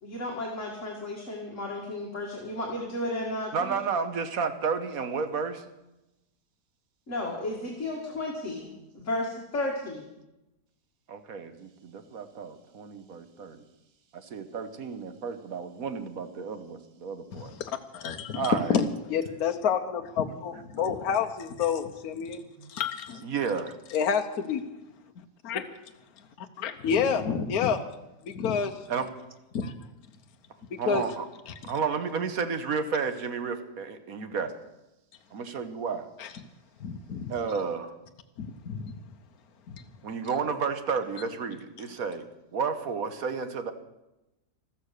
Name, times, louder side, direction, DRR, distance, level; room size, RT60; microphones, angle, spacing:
voice 1, 0.0-3.8 7.1-8.7 8.9-10.0, left 1 dB, 50° left, -2 dB, 2.4 m, -33 dB
voice 2, 3.5-5.6 11.1-13.6 14.1-17.5 18.3-18.8 22.6-22.7 23.2-23.7 28.9-29.1 30.8-31.2 31.6-34.5 35.3-36.1 37.3-37.9 40.0-42.2 42.5-43.7, right 5 dB, 65° right, 9 dB, 1.5 m, -32 dB
voice 3, 17.3-22.4 22.7-23.3 23.9-24.6 25.4-25.6 26.6-27.8 28.4-28.7 29.5-29.7 30.7-31.0 31.5-31.6 36.2-36.3 36.8-37.3 38.4-38.9 39.7-39.8, left 7 dB, 65° left, 6 dB, 1.4 m, -29 dB
14.0 x 13.5 x 6.6 m, 0.95 s
omnidirectional pair, 1.7 m